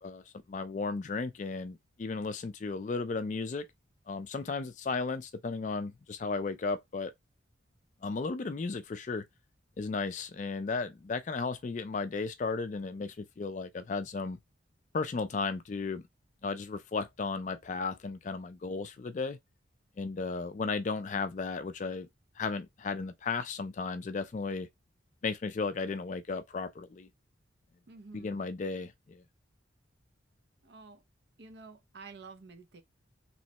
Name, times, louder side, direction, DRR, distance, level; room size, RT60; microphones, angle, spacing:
voice 1, 0.5-3.7 4.1-7.1 8.0-9.3 9.8-14.4 14.9-16.0 16.4-19.4 20.0-22.1 22.4-24.7 25.2-27.1 28.1-29.2, left 4 dB, 40° left, 0.3 m, -35 dB
voice 2, 27.9-28.5 30.6-31.0 31.4-32.8, right 4 dB, 60° right, 0.5 m, -50 dB
3.1 x 3.1 x 2.8 m
head